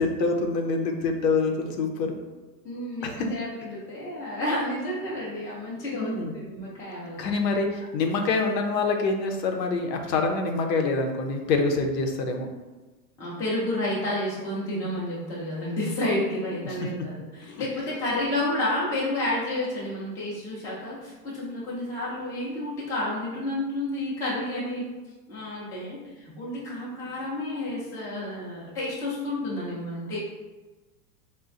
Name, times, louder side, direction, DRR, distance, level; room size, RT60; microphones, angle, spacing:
voice 1, 0.0-2.2 3.0-3.3 5.9-6.3 7.2-12.5 16.8-17.1 17.5-17.7, left 3 dB, 85° left, 3 dB, 0.7 m, -26 dB
voice 2, 2.6-3.5 3.9-7.3 13.2-24.9 25.3-30.2, left 1 dB, 5° left, -8 dB, 0.4 m, -30 dB
4.2 x 2.2 x 2.4 m, 1.2 s
hypercardioid pair, 130°, 49 cm